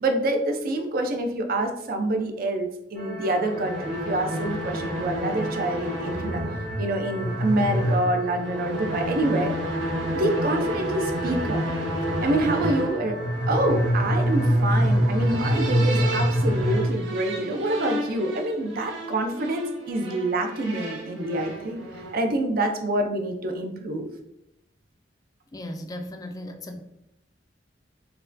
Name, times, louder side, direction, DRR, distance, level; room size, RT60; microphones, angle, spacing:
voice 1, 0.0-6.4 6.8-9.5 10.1-11.6 12.2-13.2 13.5-21.8 22.1-24.1, right 1 dB, 55° right, 5 dB, 0.5 m, -26 dB
sound 1, 2.9-14.5, equal, 35° right, 0.9 m, -39 dB
sound 2, 3.2-22.3, equal, 80° right, 0.7 m, -27 dB
voice 2, 25.5-26.8, left 1 dB, 20° left, 5 dB, 0.3 m, -36 dB
4.3 x 2.2 x 2.5 m, 0.83 s
head